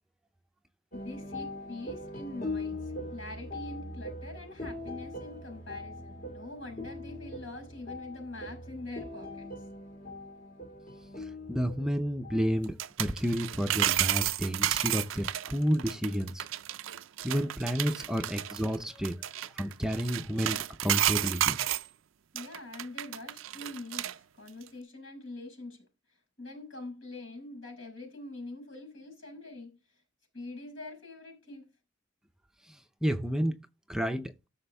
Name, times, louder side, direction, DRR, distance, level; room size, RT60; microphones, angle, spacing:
sound 1, 0.9-12.7, left 2 dB, 45° left, 1.8 m, -41 dB
voice 1, 1.0-9.7 19.3-19.4 22.3-30.0 30.3-31.7, left 2 dB, 80° left, 5.9 m, -44 dB
voice 2, 11.5-16.4 17.2-19.2 19.6-21.6 33.0-33.6 33.9-34.3, equal, 5° right, 0.6 m, -30 dB
sound 2, 12.6-21.9 22.4-24.1 24.5-24.6, right 12 dB, 85° right, 0.4 m, -31 dB
14.0 x 6.2 x 3.4 m
head